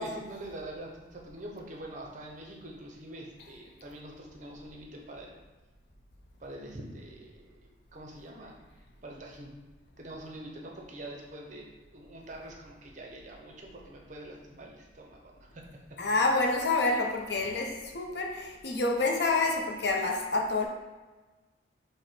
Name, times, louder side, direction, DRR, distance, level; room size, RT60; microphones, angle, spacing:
voice 1, 0.0-5.4 6.4-8.6 9.0-9.5 10.0-15.8, right 1 dB, 40° right, -1 dB, 0.6 m, -45 dB
voice 2, 16.0-20.7, left 3 dB, 55° left, 1 dB, 0.6 m, -28 dB
5.3 x 2.1 x 4.2 m, 1.2 s
head